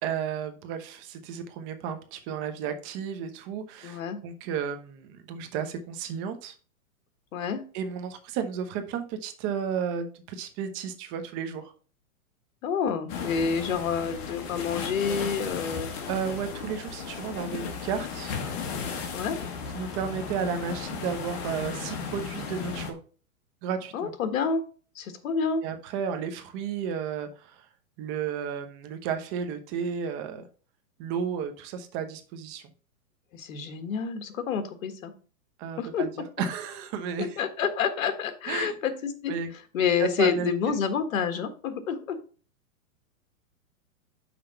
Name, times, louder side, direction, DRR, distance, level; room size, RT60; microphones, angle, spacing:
voice 1, 0.0-6.5 7.7-11.7 16.1-18.4 19.7-23.0 23.6-24.1 25.6-27.7 28.0-30.4 31.0-32.6 35.6-36.1 36.4-37.4 38.5-38.7 39.3-39.5 40.0-40.5, right 7 dB, 30° right, 8 dB, 0.9 m, -33 dB
voice 2, 3.8-4.2 7.3-7.6 12.6-15.9 19.1-19.4 23.9-24.6 24.9-25.6 33.3-35.1 35.8-36.1 37.2-39.3 39.7-42.2, left 6 dB, 65° left, 8 dB, 1.6 m, -28 dB
sound 1, 13.1-22.9, left 6 dB, 35° left, 1.6 m, -35 dB
6.0 x 4.6 x 5.6 m, 0.39 s
hypercardioid pair, 145°, 43 cm